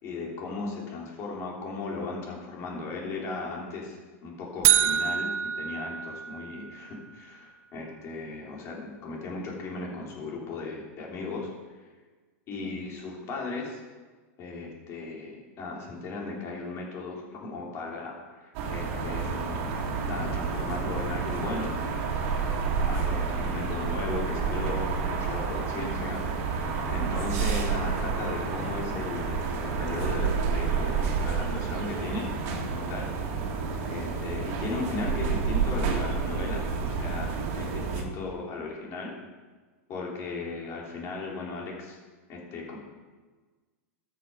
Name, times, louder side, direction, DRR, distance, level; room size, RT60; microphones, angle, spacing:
voice 1, 0.0-11.5 12.5-13.8 14.4-19.7 20.1-21.7 22.8-32.3 32.7-33.1 33.9-39.1 39.9-42.0 42.3-42.8, left 3 dB, 35° left, -2 dB, 3.2 m, -36 dB
sound 1, 4.6-6.8, right 9 dB, 35° right, 0.8 m, -25 dB
sound 2, 18.5-38.0, right 5 dB, 50° right, 1.9 m, -29 dB
13.0 x 6.6 x 4.9 m, 1.3 s
supercardioid pair, 140°, 8 cm